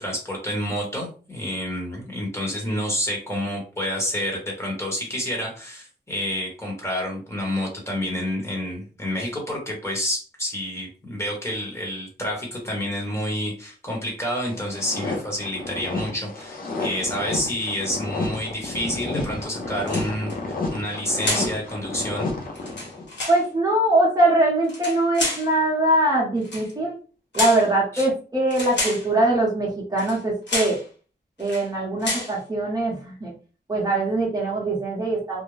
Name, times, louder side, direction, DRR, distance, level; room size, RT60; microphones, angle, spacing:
voice 1, 0.0-22.3 27.9-28.1, equal, 15° left, -2 dB, 1.0 m, -29 dB
sound 1, 14.5-23.1, left 3 dB, 55° left, 0.6 m, -31 dB
sound 2, 19.8-20.4 21.2-21.6 22.5-23.4 24.6-25.5 26.4-26.7 27.3-27.7 28.5-29.1 30.0-30.2 30.5-30.8 31.4-31.7 32.0-32.3, left 2 dB, 90° left, 1.1 m, -29 dB
voice 2, 23.3-26.9 27.3-30.8 31.4-33.3 33.7-35.4, right 1 dB, 20° right, -4 dB, 0.8 m, -22 dB
2.4 x 2.1 x 3.1 m, 0.37 s
wide cardioid pair, 135°, 18 cm